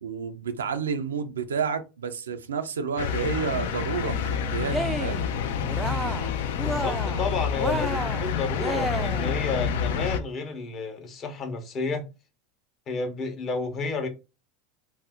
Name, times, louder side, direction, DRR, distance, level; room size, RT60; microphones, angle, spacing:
voice 1, 0.0-5.2, right 6 dB, 85° right, 0.4 m, -30 dB
sound 1, 3.0-10.2, left 7 dB, 70° left, 0.4 m, -28 dB
Cheering, 4.6-5.3 5.6-6.3 6.6-7.3 7.6-9.4, right 2 dB, 10° right, 0.3 m, -31 dB
voice 2, 6.6-12.1 12.9-14.1, left 4 dB, 40° left, 0.8 m, -31 dB
2.6 x 2.0 x 3.5 m
hypercardioid pair, 90°, 0 cm